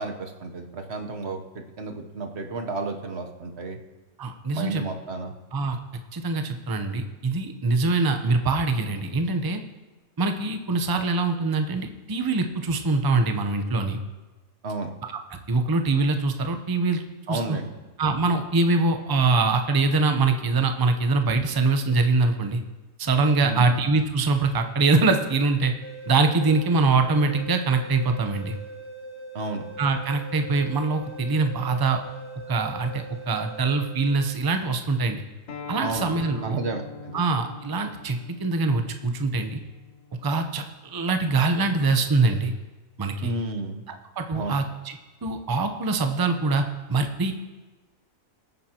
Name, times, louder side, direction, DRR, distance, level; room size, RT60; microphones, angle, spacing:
voice 1, 0.0-1.4 1.8-3.8 4.5-5.3 14.6-14.9 17.3-17.7 23.4-23.8 29.3-29.6 35.8-36.0 36.4-37.2 43.2-43.8 44.3-44.6, right 3 dB, 45° right, 4 dB, 1.2 m, -31 dB
voice 2, 4.2-4.8 5.5-5.8 6.1-9.6 10.2-14.0 15.1-15.2 15.5-17.0 17.3-17.6 18.0-22.6 23.0-25.7 26.1-28.6 29.8-32.0 32.5-35.2 35.7-36.6 37.1-39.6 40.2-42.5 43.0-43.3 43.9-45.0 45.2-46.6 46.9-47.3, right 3 dB, 30° right, 6 dB, 0.4 m, -23 dB
sound 1, 25.8-34.8, right 3 dB, 10° left, 0.6 m, -41 dB
Acoustic guitar, 35.5-40.7, left 6 dB, 50° left, 1.3 m, -42 dB
21.5 x 9.4 x 2.9 m, 1.2 s
omnidirectional pair, 1.7 m